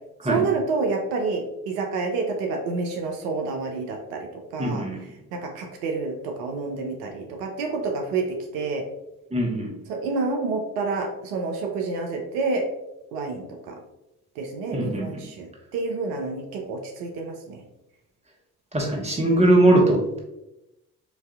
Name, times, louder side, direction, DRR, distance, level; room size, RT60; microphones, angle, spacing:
voice 1, 0.2-4.8 5.3-8.8 9.9-12.6 13.1-13.8 14.4-17.6, right 3 dB, 80° right, 2 dB, 0.6 m, -28 dB
voice 2, 4.6-5.0 9.3-9.7 14.7-15.1 18.7-20.2, right 1 dB, 15° right, -1 dB, 1.1 m, -20 dB
3.9 x 2.6 x 2.3 m, 0.91 s
hypercardioid pair, 45°, 45 cm